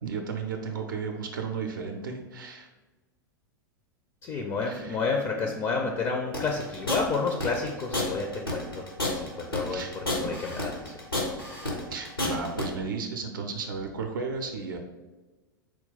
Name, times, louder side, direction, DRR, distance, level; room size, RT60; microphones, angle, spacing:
voice 1, 0.0-2.7 4.6-5.0 5.4-5.5 9.7-10.3 11.3-11.4 11.9-14.8, right 5 dB, 65° right, 4 dB, 0.4 m, -34 dB
voice 2, 4.2-8.9 9.1-9.8 10.2-10.9, left 4 dB, 25° left, 2 dB, 0.4 m, -30 dB
sound 1, 6.3-12.6, left 2 dB, 90° left, 1.0 m, -30 dB
4.4 x 2.2 x 3.8 m, 1.2 s
figure-of-eight pair, 90°, 12 cm